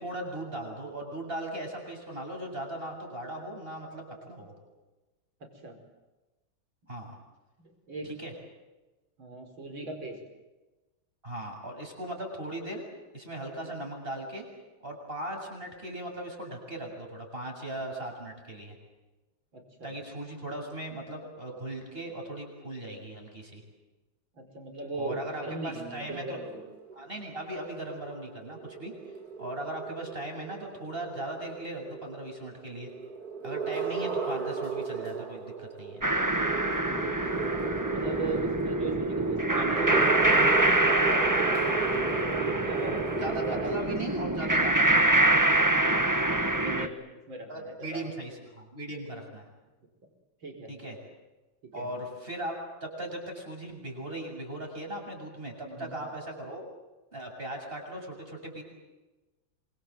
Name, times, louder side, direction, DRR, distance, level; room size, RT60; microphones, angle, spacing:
voice 1, 0.0-4.5 6.9-7.1 8.2-8.3 11.2-12.8 13.1-14.4 14.8-18.8 19.8-23.6 25.0-26.4 27.0-28.9 29.4-32.9 33.4-36.0 43.2-45.1 47.5-49.5 50.7-51.0 51.7-56.6 57.1-58.6, right 1 dB, 25° right, 2 dB, 7.8 m, -38 dB
voice 2, 5.4-5.8 7.6-8.2 9.2-10.2 19.5-19.9 24.3-26.6 37.0-37.5 37.9-42.0 42.4-43.1 43.4-44.1 45.9-47.0 47.3-48.1 50.4-50.7 51.6-51.9 55.6-56.0, right 2 dB, 70° right, 4 dB, 5.8 m, -39 dB
sound 1, 26.4-43.8, right 5 dB, 50° right, 2.8 m, -34 dB
sound 2, 36.0-46.9, right 1 dB, 10° right, 1.3 m, -25 dB
28.0 x 25.0 x 7.8 m, 1.1 s
omnidirectional pair, 2.2 m